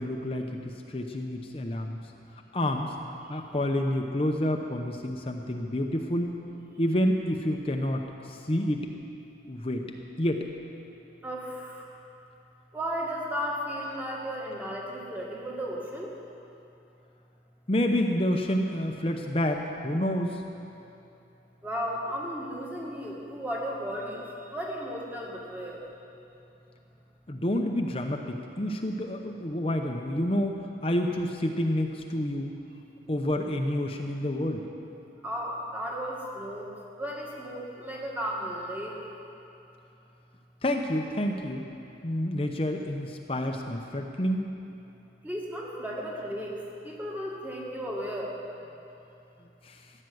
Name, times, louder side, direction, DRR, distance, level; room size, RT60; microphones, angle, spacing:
voice 1, 0.0-2.0 2.5-2.9 3.3-6.3 6.8-8.9 9.5-9.8 10.2-10.4 17.7-20.4 27.3-32.5 33.1-34.7 40.6-41.6 42.0-44.4 49.6-49.8, left 1 dB, 30° left, 3 dB, 0.7 m, -29 dB
voice 2, 11.2-11.9 12.7-16.1 21.6-25.8 35.2-39.0 45.2-48.4, equal, 10° right, -3 dB, 2.0 m, -35 dB
15.0 x 11.0 x 7.9 m, 2.8 s
head